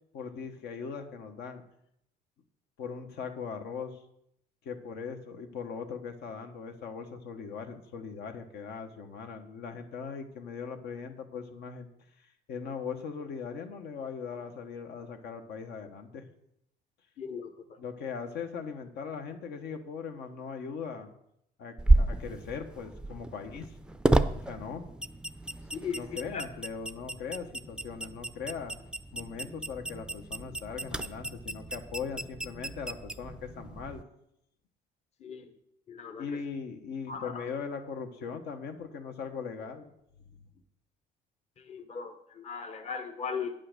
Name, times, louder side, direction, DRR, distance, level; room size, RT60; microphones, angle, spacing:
voice 1, 0.1-1.6 2.8-4.0 4.6-11.9 12.2-16.2 17.8-21.1 21.6-23.7 24.3-24.9 25.9-28.8 29.1-34.0 36.2-39.9, left 6 dB, 75° left, 5 dB, 1.2 m, -39 dB
voice 2, 17.2-17.5 25.7-26.0 26.3-26.4 35.2-35.5 35.9-36.3 37.1-37.4 41.6-43.5, left 6 dB, 40° left, 7 dB, 0.9 m, -37 dB
sound 1, 21.8-34.0, right 2 dB, 5° right, 0.5 m, -31 dB
9.0 x 5.7 x 6.7 m, 0.75 s
cardioid pair, 110°, 17 cm